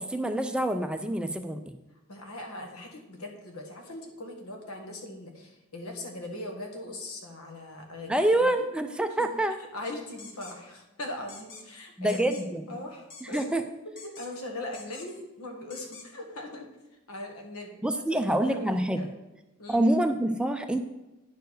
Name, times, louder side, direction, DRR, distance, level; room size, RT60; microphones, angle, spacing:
voice 1, 0.0-1.7 8.1-9.5 12.0-12.8 13.2-13.6 17.8-19.0 19.7-20.8, right 1 dB, 5° right, 7 dB, 0.4 m, -26 dB
voice 2, 2.1-8.2 8.6-8.7 9.2-9.3 9.7-12.4 12.7-13.4 14.0-16.7 17.1-17.8 18.1-19.2 19.6-19.8, left 2 dB, 85° left, 2 dB, 1.7 m, -40 dB
sound 1, 10.2-10.6 11.3-11.6 12.1-12.4 13.1-13.6 14.0-14.4 14.7-15.2 15.7-16.1, left 4 dB, 60° left, 1.3 m, -46 dB
9.4 x 4.6 x 6.5 m, 1.1 s
head